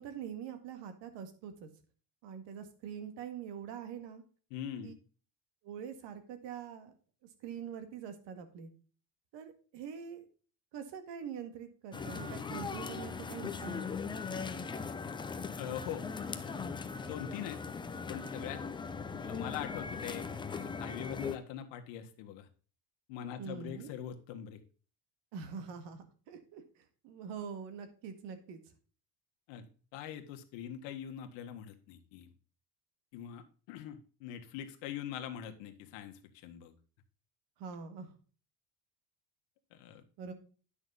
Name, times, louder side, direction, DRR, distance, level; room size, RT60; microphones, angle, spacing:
voice 1, 0.0-1.7 2.2-4.2 4.8-4.9 5.6-6.9 7.4-8.7 9.3-10.3 10.7-13.8 23.4-23.9 25.3-26.6 27.0-28.6 37.6-38.1 40.2-40.3, right 7 dB, 65° right, 8 dB, 2.0 m, -44 dB
voice 2, 4.5-5.0 15.5-16.0 16.4-17.6 18.1-18.6 19.2-22.5 23.1-24.6 29.5-32.3 33.1-36.7 39.7-40.0, left 10 dB, 80° left, 5 dB, 1.7 m, -43 dB
sound 1, 11.9-21.4, left 5 dB, 10° left, 0.5 m, -39 dB
10.0 x 6.3 x 3.9 m, 0.39 s
cardioid pair, 150°, 44 cm